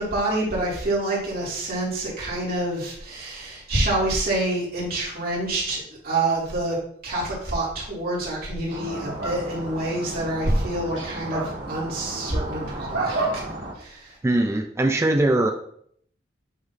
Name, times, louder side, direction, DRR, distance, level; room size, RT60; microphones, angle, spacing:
voice 1, 0.0-6.8 7.0-13.2 13.8-14.1, right 2 dB, 55° right, -5 dB, 2.7 m, -27 dB
sound 1, 8.7-13.7, right 2 dB, 85° right, 1.8 m, -31 dB
voice 2, 14.2-15.5, right 2 dB, 15° right, 5 dB, 0.4 m, -21 dB
8.2 x 3.1 x 4.0 m, 0.65 s
head